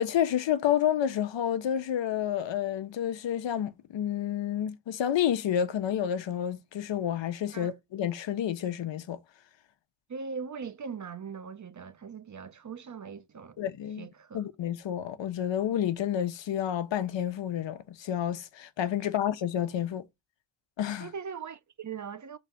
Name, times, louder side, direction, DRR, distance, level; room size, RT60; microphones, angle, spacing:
voice 1, 0.0-9.2 13.6-14.1 14.3-20.0 20.8-21.1, left 10 dB, 75° left, 1.1 m, -29 dB
voice 2, 10.1-13.6 14.0-14.4 19.0-19.1 21.0-22.4, right 6 dB, 40° right, 0.8 m, -40 dB
5.0 x 4.0 x 5.7 m
cardioid pair, 75°, 44 cm